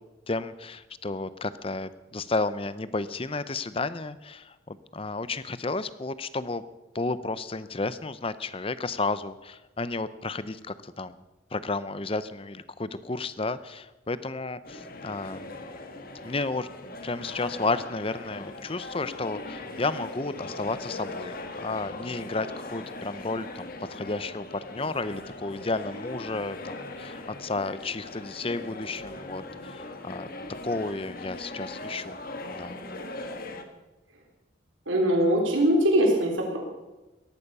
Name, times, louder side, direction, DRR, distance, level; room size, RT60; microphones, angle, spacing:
voice 1, 0.3-6.6 6.9-11.2 11.5-15.6 16.2-16.7 17.0-21.3 21.6-30.3 30.6-32.2 32.5-32.7, left 3 dB, 30° left, 15 dB, 0.6 m, -32 dB
sound 1, 14.6-33.6, left 2 dB, 45° left, 1.7 m, -40 dB
voice 2, 34.9-36.6, right 1 dB, 75° right, 0 dB, 3.7 m, -22 dB
18.0 x 13.5 x 5.5 m, 1.1 s
head